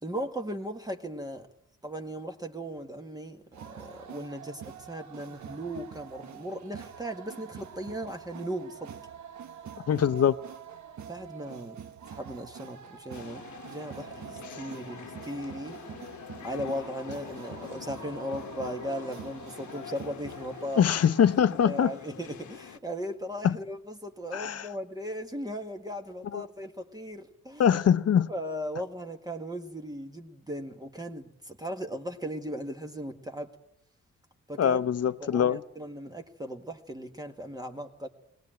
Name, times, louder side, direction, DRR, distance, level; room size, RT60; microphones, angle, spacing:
voice 1, 0.0-1.5 1.8-3.4 3.7-8.9 11.1-11.8 12.1-15.8 16.4-20.8 21.5-27.8 28.3-33.5 34.5-34.8 35.2-38.1, equal, 15° right, 1.9 m, -37 dB
sound 1, 3.5-21.4, right 8 dB, 75° right, 1.5 m, -45 dB
voice 2, 9.9-10.4 20.8-21.9 23.4-23.6 24.3-24.7 26.3-26.4 27.6-28.3 34.6-35.6, left 8 dB, 55° left, 0.9 m, -23 dB
sound 2, 13.1-22.8, left 10 dB, 80° left, 1.2 m, -45 dB
21.5 x 18.5 x 9.1 m
cardioid pair, 100°, 29 cm